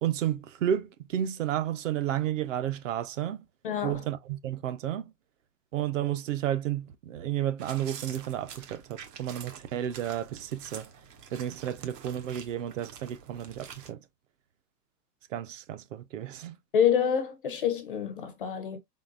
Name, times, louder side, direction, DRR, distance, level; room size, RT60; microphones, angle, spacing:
voice 1, 0.0-3.4 3.8-5.1 5.7-10.9 11.3-14.0 15.3-16.5, right 11 dB, 50° right, 0.6 m, -32 dB
voice 2, 3.6-4.0 16.7-18.8, left 8 dB, 35° left, 0.4 m, -27 dB
sound 1, 7.6-13.9, right 7 dB, 70° right, 1.4 m, -47 dB
4.4 x 3.9 x 2.3 m
supercardioid pair, 165°, 49 cm